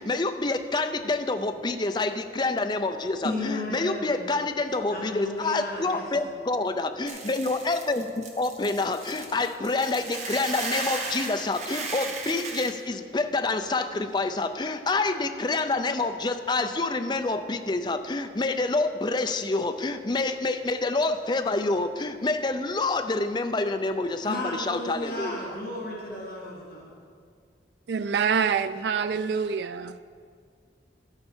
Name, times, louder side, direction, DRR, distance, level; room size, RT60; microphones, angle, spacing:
voice 1, 0.0-25.5, left 3 dB, 25° left, 8 dB, 0.5 m, -27 dB
voice 2, 3.2-4.3 4.9-6.4 24.2-27.0, left 1 dB, 55° left, -3 dB, 1.6 m, -34 dB
Hiss / Boiling, 7.1-12.7, right 4 dB, 40° right, 1.1 m, -35 dB
voice 3, 27.9-30.0, right 6 dB, 70° right, 12 dB, 0.3 m, -26 dB
12.0 x 8.8 x 4.5 m, 2.1 s
head